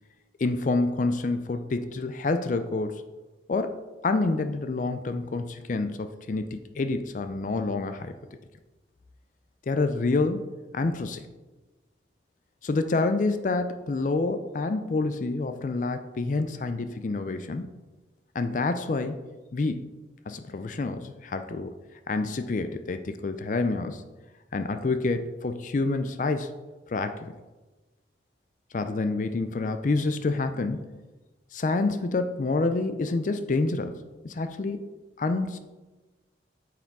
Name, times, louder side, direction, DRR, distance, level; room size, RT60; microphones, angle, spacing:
voice 1, 0.4-3.0 3.5-8.1 9.7-10.5 10.7-11.3 12.6-17.7 18.3-19.2 19.5-19.9 20.3-21.7 22.1-24.0 24.5-26.5 26.9-27.3 28.7-30.9 31.5-34.8 35.2-35.6, left 3 dB, 45° left, 9 dB, 0.4 m, -28 dB
8.8 x 4.8 x 4.6 m, 1.2 s
head